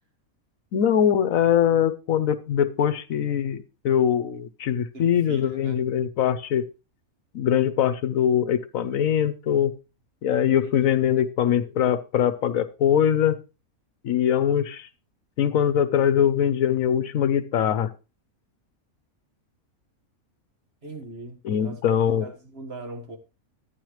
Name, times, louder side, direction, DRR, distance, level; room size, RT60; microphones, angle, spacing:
voice 1, 0.7-6.7 7.3-9.7 10.2-13.4 14.0-14.9 15.4-17.9 21.4-22.3, left 9 dB, 75° left, 13 dB, 1.1 m, -22 dB
voice 2, 4.9-5.8 10.4-10.7 20.8-21.8 22.1-23.2, right 2 dB, 45° right, 3 dB, 1.7 m, -41 dB
12.0 x 9.3 x 3.1 m, 0.30 s
omnidirectional pair, 1.5 m